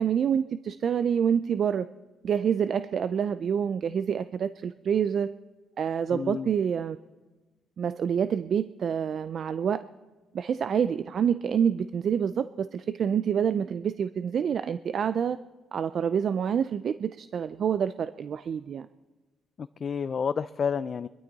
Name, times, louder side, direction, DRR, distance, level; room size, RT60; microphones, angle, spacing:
voice 1, 0.0-1.9 2.2-5.3 5.8-7.0 7.8-9.8 10.3-15.4 15.7-18.9, right 7 dB, 55° right, 13 dB, 0.4 m, -27 dB
voice 2, 6.1-6.5 19.6-21.1, left 6 dB, 45° left, 14 dB, 0.4 m, -30 dB
22.5 x 12.5 x 4.0 m, 1.2 s
cardioid pair, 90°, 0 cm